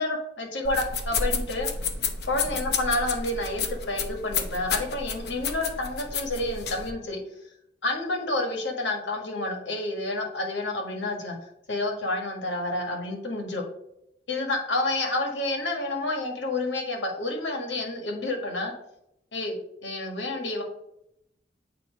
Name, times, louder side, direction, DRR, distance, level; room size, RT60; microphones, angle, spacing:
voice 1, 0.0-1.7 2.3-7.2 7.8-11.4 11.7-13.6 14.3-18.7 19.3-19.5 19.8-20.6, left 2 dB, 85° left, 1 dB, 1.5 m, -29 dB
sound 1, 0.6-6.9, left 5 dB, 60° left, 0.8 m, -31 dB
8.5 x 2.9 x 5.1 m, 0.80 s
head